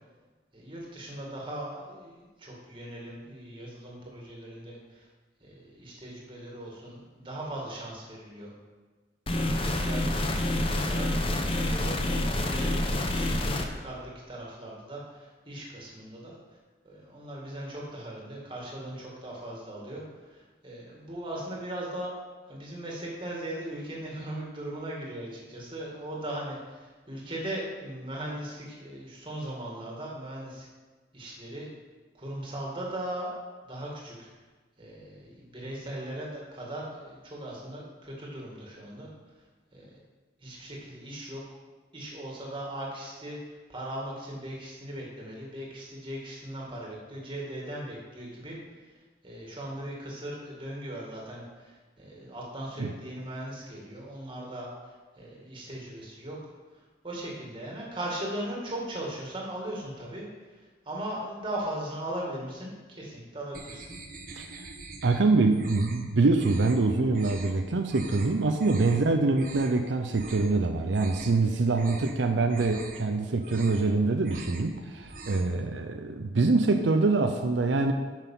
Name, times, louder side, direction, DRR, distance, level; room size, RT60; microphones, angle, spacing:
voice 1, 0.5-5.1 5.4-8.5 9.3-16.4 16.8-22.1 22.5-30.7 31.1-31.7 32.1-33.3 33.6-34.3 34.8-39.1 39.7-40.0 40.4-41.4 41.9-48.6 49.2-56.5 57.0-63.9 69.0-69.1, right 1 dB, 30° right, -3 dB, 2.2 m, -39 dB
sound 1, 9.3-13.7, left 1 dB, 30° left, 0.8 m, -27 dB
sound 2, 63.5-65.2 65.5-66.0 66.4-66.8 67.1-67.5 67.9-68.3 68.6-69.0 69.3-69.8 70.1-70.5 70.8-71.4 71.7-72.2 72.5-73.0 73.3-73.9 74.2-74.7 75.0-75.5, right 3 dB, 50° right, 1.2 m, -43 dB
voice 2, 65.0-77.9, right 3 dB, 85° right, 6 dB, 0.6 m, -25 dB
9.1 x 6.3 x 5.7 m, 1.3 s
head